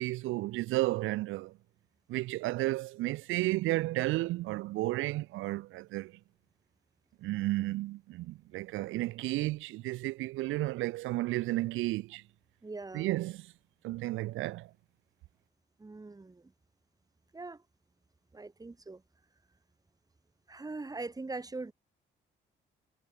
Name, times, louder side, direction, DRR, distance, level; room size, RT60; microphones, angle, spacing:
voice 1, 0.0-1.5 2.1-6.1 7.2-12.2 12.9-13.4 13.8-14.7, right 18 dB, 80° right, 0.4 m, -32 dB
voice 2, 12.6-13.1 15.8-16.5 17.3-17.6 18.3-19.0 20.5-21.7, right 3 dB, 20° right, 1.7 m, -41 dB
cardioid pair, 90°, 20 cm